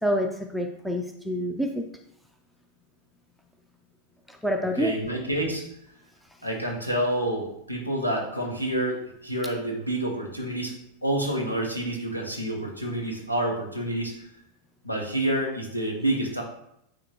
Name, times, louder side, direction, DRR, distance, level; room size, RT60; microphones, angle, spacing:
voice 1, 0.0-1.8 4.4-4.9, equal, ahead, 3 dB, 0.5 m, -27 dB
voice 2, 4.8-5.6 6.4-10.7 11.0-14.1 14.8-16.4, right 1 dB, 90° left, 0 dB, 1.3 m, -28 dB
9.5 x 3.4 x 3.0 m, 0.77 s
figure-of-eight pair, 90°, 0 cm